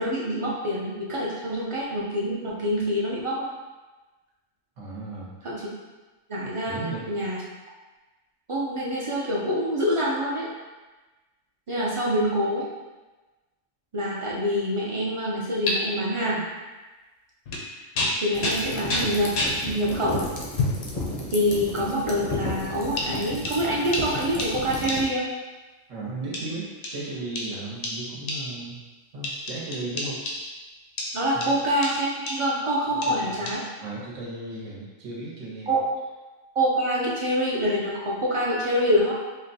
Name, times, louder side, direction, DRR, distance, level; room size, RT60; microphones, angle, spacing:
voice 1, 0.0-3.5 5.4-5.6 6.3-7.4 8.5-10.5 11.7-12.7 13.9-16.5 18.2-19.3 19.6-20.2 21.3-25.3 31.1-33.6 35.7-35.8 36.5-39.1, equal, 50° right, -5 dB, 0.3 m, -26 dB
voice 2, 4.8-5.3 6.7-7.1 25.9-28.8 29.1-30.2 31.3-31.6 32.9-33.5 33.8-35.7, right 2 dB, 85° right, -5 dB, 1.3 m, -35 dB
sound 1, 15.7-15.8 17.5-17.7 17.9-19.6 20.6-20.9 21.6-21.8 23.0-25.3 26.3-28.7 29.2-30.6 31.0-32.6 33.0-33.5, left 2 dB, 85° left, 1.0 m, -31 dB
sound 2, 18.3-25.0, left 1 dB, 45° left, 0.5 m, -34 dB
5.0 x 2.2 x 2.6 m, 1.2 s
omnidirectional pair, 1.3 m